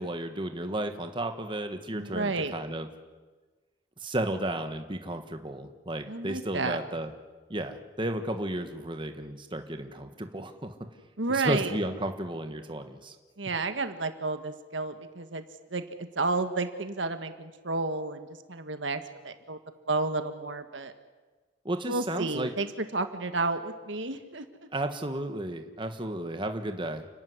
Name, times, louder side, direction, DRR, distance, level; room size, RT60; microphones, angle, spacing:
voice 1, 0.0-2.9 4.0-7.1 7.5-10.7 11.3-13.1 21.6-22.5 24.7-27.0, right 1 dB, 25° right, 7 dB, 1.5 m, -33 dB
voice 2, 1.9-2.5 6.1-6.8 11.2-11.7 13.4-15.4 15.7-15.8 16.1-19.6 19.9-20.9 21.8-24.7, right 3 dB, 85° right, 9 dB, 1.6 m, -31 dB
29.5 x 12.5 x 9.6 m, 1.3 s
head